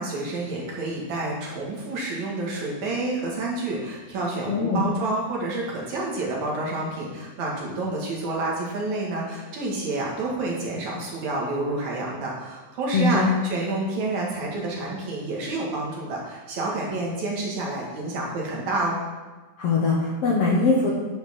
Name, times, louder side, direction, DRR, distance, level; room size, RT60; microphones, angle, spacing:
voice 1, 0.0-19.0, right 2 dB, 60° right, -3 dB, 2.9 m, -29 dB
voice 2, 4.5-4.8 12.9-13.3 19.6-20.9, left 3 dB, 65° left, -3 dB, 1.7 m, -21 dB
9.6 x 5.0 x 6.2 m, 1.2 s
omnidirectional pair, 3.9 m